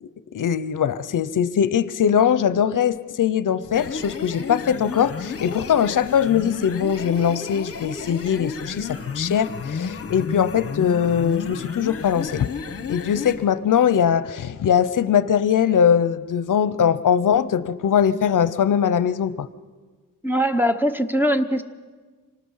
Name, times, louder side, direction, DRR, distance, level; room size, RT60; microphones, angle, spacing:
voice 1, 0.0-12.5 12.9-19.5, left 8 dB, 65° left, 15 dB, 0.7 m, -21 dB
sound 1, 3.6-13.4, left 5 dB, 45° left, 1.2 m, -32 dB
voice 2, 20.2-21.6, equal, 5° right, 9 dB, 0.8 m, -21 dB
25.5 x 19.5 x 5.6 m, 1.4 s
wide cardioid pair, 130°, 33 cm